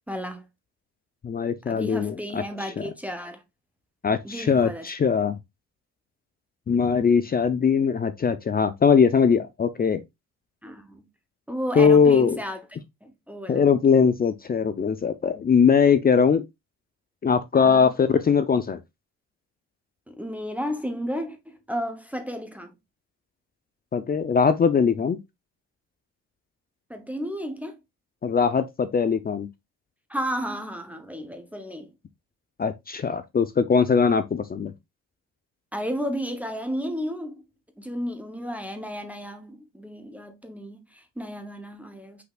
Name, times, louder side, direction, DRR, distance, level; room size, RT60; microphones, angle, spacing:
voice 1, 0.1-0.4 1.7-3.4 4.2-4.9 10.6-11.1 11.5-12.6 13.0-13.7 17.5-17.9 20.1-22.7 26.9-27.8 30.1-31.9 35.7-37.4 37.8-42.2, equal, 5° right, 0.8 m, -33 dB
voice 2, 1.2-2.4 2.8-2.9 4.0-5.4 6.7-10.0 11.8-12.4 13.5-16.5 17.2-18.8 23.9-25.2 28.2-29.5 32.6-34.7, left 6 dB, 30° left, 0.5 m, -21 dB
5.5 x 3.9 x 2.4 m
cardioid pair, 90°, 30 cm